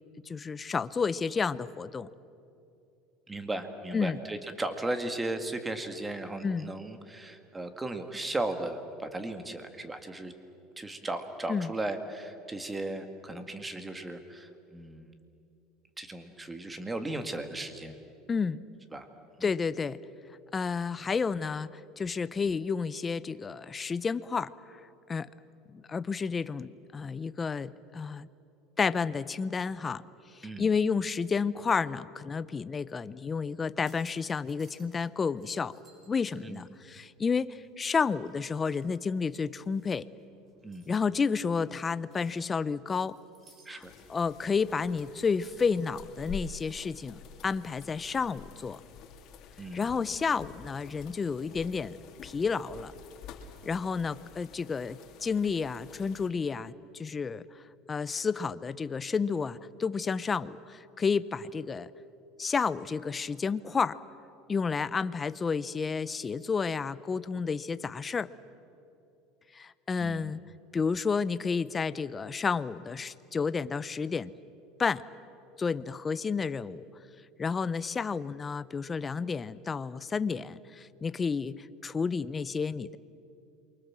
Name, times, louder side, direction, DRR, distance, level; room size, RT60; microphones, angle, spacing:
voice 1, 0.3-2.1 3.9-4.2 6.4-6.7 11.5-11.7 18.3-18.6 19.4-20.0 20.5-24.8 25.1-25.3 25.7-28.3 28.8-30.0 30.3-35.7 36.1-40.1 40.9-43.2 43.7-48.8 49.7-52.0 52.2-52.9 53.6-57.4 57.9-61.9 62.4-64.0 64.5-68.3 69.5-70.4 70.7-74.3 74.8-75.0 75.6-76.9 77.4-83.0, left 5 dB, 20° left, 16 dB, 0.7 m, -31 dB
voice 2, 3.3-10.3 10.8-15.1 16.0-17.9 18.9-19.1 19.4-19.5 30.4-30.7 36.4-36.7 40.6-40.9 43.7-43.9 49.6-49.9 70.0-70.3, right 2 dB, 10° right, 8 dB, 2.0 m, -36 dB
sound 1, 33.6-35.1 35.4-37.8 38.2-46.5, right 2 dB, 35° right, 6.5 m, -64 dB
sound 2, 43.8-56.3, left 6 dB, 50° left, 2.9 m, -49 dB
28.5 x 24.0 x 7.5 m, 2.7 s
supercardioid pair, 130°, 0 cm